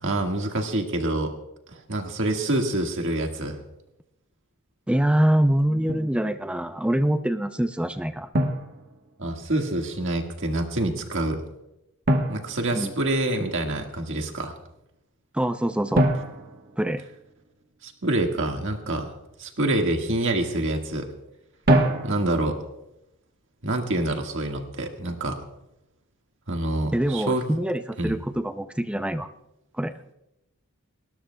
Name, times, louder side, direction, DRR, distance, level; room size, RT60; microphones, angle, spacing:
voice 1, 0.0-1.3 1.7-3.6 9.2-11.4 12.3-14.5 17.8-19.1 19.4-21.1 22.0-22.6 23.6-25.4 26.5-27.4 28.0-28.2, right 1 dB, 55° right, 3 dB, 1.7 m, -26 dB
voice 2, 4.9-8.3 12.7-12.9 15.3-16.1 16.8-17.0 26.9-29.3 29.8-29.9, right 1 dB, 5° right, 9 dB, 0.4 m, -24 dB
Drum, 5.9-6.2 8.3-9.5 12.1-13.5 15.9-17.7 21.7-22.6, right 1 dB, 40° right, 1.3 m, -25 dB
29.0 x 13.0 x 2.3 m, 0.89 s
head